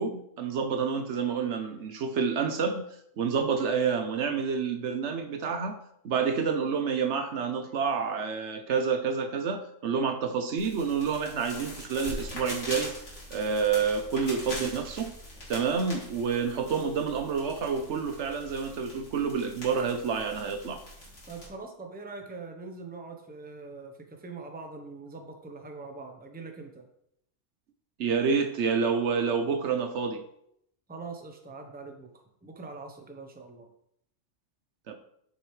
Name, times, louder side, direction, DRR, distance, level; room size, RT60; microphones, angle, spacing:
voice 1, 0.0-2.9 3.2-5.8 6.0-12.9 13.3-15.1 15.5-20.8 28.0-30.2 34.9-35.0, right 6 dB, 65° right, 7 dB, 1.0 m, -28 dB
sound 1, 10.6-21.5, equal, 70° left, 3.1 m, -42 dB
voice 2, 21.3-23.9 24.2-26.8 30.9-32.1 32.4-33.7, right 3 dB, 10° right, 4 dB, 0.7 m, -43 dB
7.7 x 6.4 x 3.2 m, 0.73 s
omnidirectional pair, 1.3 m